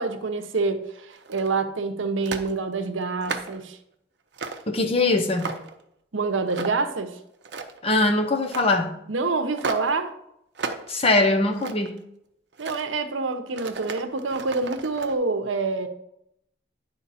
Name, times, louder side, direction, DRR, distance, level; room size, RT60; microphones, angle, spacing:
voice 1, 0.0-3.8 6.1-7.2 9.1-10.1 12.6-15.9, right 3 dB, 90° right, 8 dB, 0.8 m, -27 dB
sound 1, 1.1-1.6 2.2-2.5 3.0-3.6 4.3-4.7 5.1-5.8 6.5-6.9 7.3-7.9 8.4-8.8 9.6-10.0 10.6-10.9 11.3-12.0 12.5-12.9 13.5-15.2, right 4 dB, 60° right, 0.7 m, -34 dB
voice 2, 4.7-5.6 7.8-9.0 10.9-12.0, left 2 dB, 30° left, 5 dB, 0.7 m, -22 dB
9.7 x 4.5 x 4.2 m, 0.77 s
head